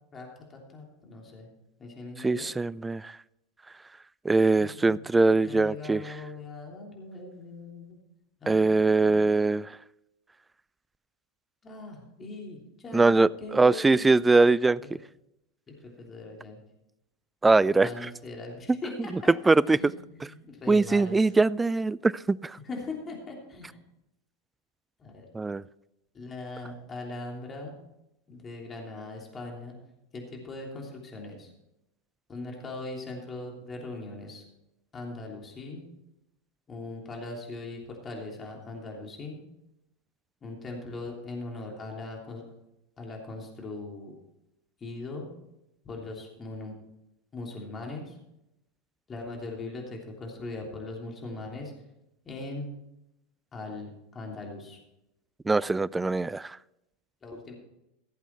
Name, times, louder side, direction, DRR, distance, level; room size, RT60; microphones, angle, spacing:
voice 1, 0.1-1.5 1.8-2.5 4.6-8.0 11.6-14.3 14.8-14.9 15.7-16.6 17.8-19.3 19.7-21.3 22.6-23.8 25.0-25.3 26.1-27.8 28.3-29.8 30.1-31.5 32.3-34.4 34.9-35.8 36.7-39.4 40.4-42.4 43.0-44.1 44.8-45.3 45.8-46.7 47.3-48.2 49.1-51.7 52.2-52.7 53.5-54.8 57.2-57.5, left 2 dB, 25° left, 0 dB, 3.2 m, -40 dB
voice 2, 2.2-3.2 4.2-6.0 8.5-9.8 12.9-14.8 17.4-17.9 19.5-19.8 20.7-22.6 25.3-25.6 55.5-56.6, right 3 dB, 10° right, 22 dB, 0.3 m, -22 dB
16.0 x 8.1 x 4.5 m, 0.87 s
hypercardioid pair, 90°, 0 cm